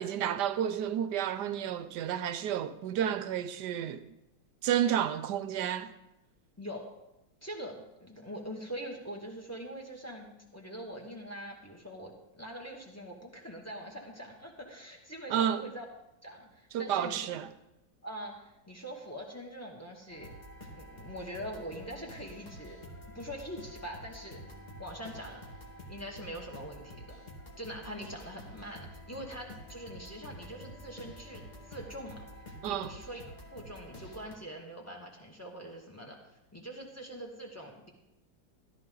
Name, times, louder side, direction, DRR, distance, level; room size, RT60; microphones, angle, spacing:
voice 1, 0.0-4.1 4.6-5.9 15.3-15.6 16.7-17.5 32.6-32.9, right 9 dB, 70° right, 1.2 m, -31 dB
voice 2, 7.4-15.8 16.2-17.3 18.0-20.3 20.7-22.8 23.1-24.4 24.8-25.4 25.9-27.2 27.6-32.2 32.7-33.2 33.5-37.9, equal, 10° left, 1.9 m, -43 dB
sound 1, 20.1-34.3, equal, 25° left, 1.6 m, -48 dB
13.5 x 12.5 x 3.9 m
omnidirectional pair, 2.0 m